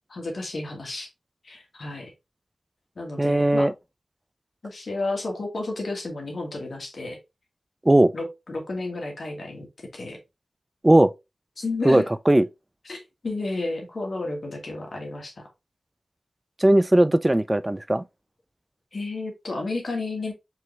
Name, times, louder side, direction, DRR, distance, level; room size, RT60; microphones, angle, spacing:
voice 1, 0.1-1.1 1.4-2.1 3.0-3.7 4.6-7.2 8.1-9.7 9.9-10.2 11.6-12.1 12.8-15.5 18.9-20.3, left 2 dB, 65° left, 1.4 m, -32 dB
voice 2, 3.2-3.7 7.9-8.1 10.8-11.1 11.9-12.5 16.6-18.0, right 1 dB, 20° right, 0.3 m, -18 dB
4.7 x 3.1 x 2.8 m
wide cardioid pair, 80°, 0 cm